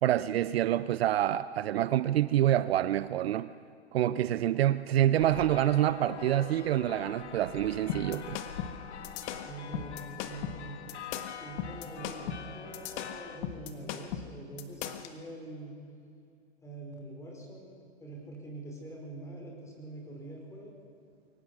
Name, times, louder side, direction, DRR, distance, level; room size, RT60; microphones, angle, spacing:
voice 1, 0.0-3.5 3.9-8.4, right 12 dB, 60° right, 15 dB, 0.7 m, -27 dB
sound 1, 5.2-13.4, left 8 dB, 75° left, 1.5 m, -44 dB
sound 2, 7.9-15.1, left 9 dB, 40° left, 1.6 m, -38 dB
voice 2, 9.3-10.8 11.4-15.8 16.6-17.7 18.0-20.7, right 2 dB, 10° left, 0 dB, 4.8 m, -44 dB
23.0 x 18.5 x 6.1 m, 2.4 s
hypercardioid pair, 130°, 34 cm